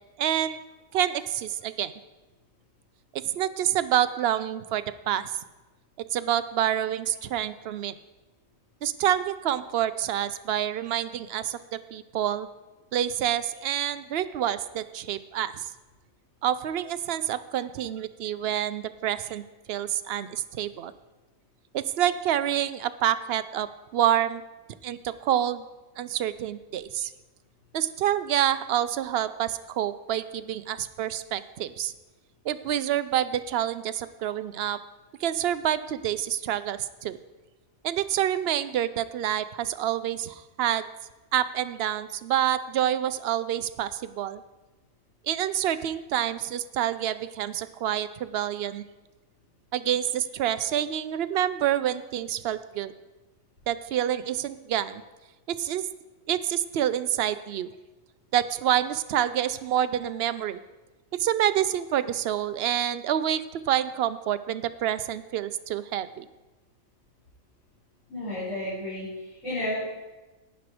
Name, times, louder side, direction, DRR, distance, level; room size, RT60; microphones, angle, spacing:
voice 1, 0.2-0.6 0.9-1.9 3.1-5.3 6.1-7.9 8.8-12.5 12.9-15.5 16.4-19.4 19.7-20.9 21.7-24.4 24.8-25.7 26.0-27.1 27.7-31.9 32.4-34.8 35.2-37.2 37.8-40.8 41.3-44.4 45.2-48.8 49.7-52.9 53.7-55.0 55.5-55.9 56.3-57.7 58.3-60.6 61.2-66.2, right 11 dB, 60° right, 13 dB, 0.7 m, -27 dB
voice 2, 68.1-69.8, left 1 dB, 70° left, -12 dB, 5.3 m, -32 dB
12.0 x 9.3 x 4.9 m, 1.1 s
omnidirectional pair, 1.4 m